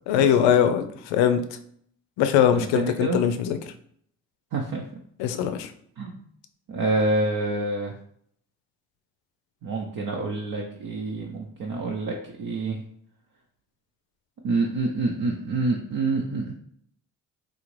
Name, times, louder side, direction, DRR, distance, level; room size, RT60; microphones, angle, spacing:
voice 1, 0.1-1.4 2.2-3.6 5.2-5.7, left 9 dB, 80° left, 9 dB, 0.5 m, -21 dB
voice 2, 2.5-3.2 4.5-4.8 6.0-6.2 6.7-7.9 9.6-12.8 14.4-16.5, right 2 dB, 50° right, 0 dB, 0.7 m, -27 dB
3.9 x 2.5 x 3.1 m, 0.65 s
hypercardioid pair, 45°, 43 cm